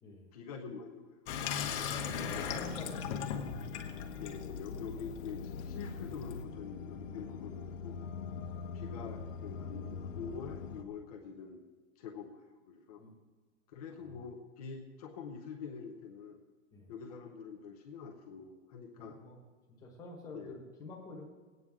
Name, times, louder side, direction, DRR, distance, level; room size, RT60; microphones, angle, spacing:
voice 1, 0.3-1.1 2.1-2.5 4.2-8.0 8.7-11.6 12.0-13.0 13.7-16.4 16.9-19.2 20.3-20.5, left 6 dB, 30° left, 1 dB, 0.8 m, -45 dB
Water tap faucet / Sink (filling or washing), 1.3-6.4, left 7 dB, 60° left, 1.2 m, -39 dB
voice 2, 1.8-3.7 7.1-7.3 8.3-8.6 13.0-13.1 14.0-14.2 16.7-16.9 19.0-19.4 19.8-21.2, left 2 dB, 10° left, -2 dB, 1.3 m, -49 dB
sound 1, 2.1-10.8, left 6 dB, 85° left, 1.1 m, -44 dB
17.5 x 9.2 x 3.6 m, 1.4 s
supercardioid pair, 175°, 37 cm